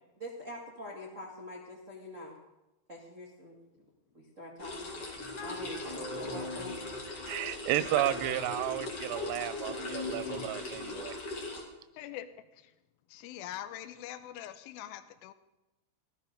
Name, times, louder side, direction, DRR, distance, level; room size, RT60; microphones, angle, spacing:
voice 1, 0.2-2.4 2.9-3.5 4.1-4.9 5.4-6.8, left 1 dB, 35° right, -3 dB, 1.2 m, -44 dB
sound 1, 4.6-11.6, left 2 dB, 40° left, 3.0 m, -40 dB
sound 2, 5.1-10.9, left 2 dB, 10° left, 1.6 m, -43 dB
voice 2, 7.3-11.1, right 14 dB, 85° right, 16 dB, 2.7 m, -32 dB
voice 3, 11.9-12.3 12.5-12.7 13.1-15.3, left 12 dB, 80° left, 9 dB, 2.3 m, -43 dB
14.5 x 13.0 x 5.1 m, 0.98 s
omnidirectional pair, 4.8 m